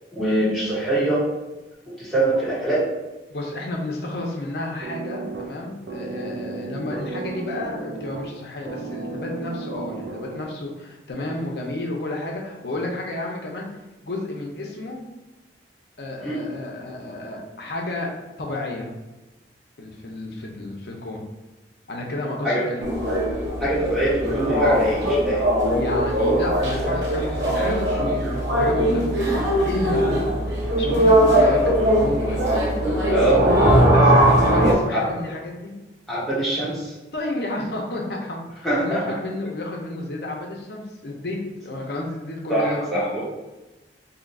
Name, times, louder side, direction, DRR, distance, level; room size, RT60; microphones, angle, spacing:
voice 1, 0.1-1.3 2.0-2.8 16.2-16.4 22.4-22.7 23.6-25.4 33.1-33.4 34.9-35.1 36.1-36.9 38.6-39.0 42.5-43.2, right 1 dB, ahead, -9 dB, 1.1 m, -23 dB
voice 2, 3.3-13.7 14.0-15.0 16.0-18.1 18.4-18.9 19.8-21.2 21.9-22.8 25.7-28.2 28.6-29.4 29.6-33.3 33.8-35.7 37.1-42.9, left 2 dB, 60° left, -1 dB, 0.7 m, -31 dB
sound 1, 4.8-10.8, right 4 dB, 65° right, 0.3 m, -34 dB
sound 2, 22.8-34.7, right 1 dB, 85° right, 0.8 m, -20 dB
2.8 x 2.4 x 4.0 m, 1.1 s
head